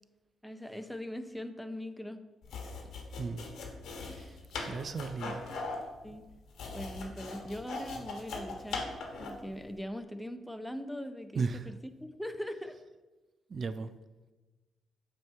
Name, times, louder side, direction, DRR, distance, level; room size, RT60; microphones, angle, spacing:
voice 1, 0.4-2.2 4.1-4.4 5.2-5.4 6.0-6.3 6.7-8.9 9.2-12.8, equal, ahead, 9 dB, 0.6 m, -41 dB
sound 1, 2.4-9.5, left 3 dB, 75° left, 1.1 m, -40 dB
voice 2, 4.6-5.5 11.4-11.7 13.5-13.9, right 4 dB, 50° right, 13 dB, 0.3 m, -35 dB
7.7 x 3.0 x 5.5 m, 1.2 s
cardioid pair, 70°, 0 cm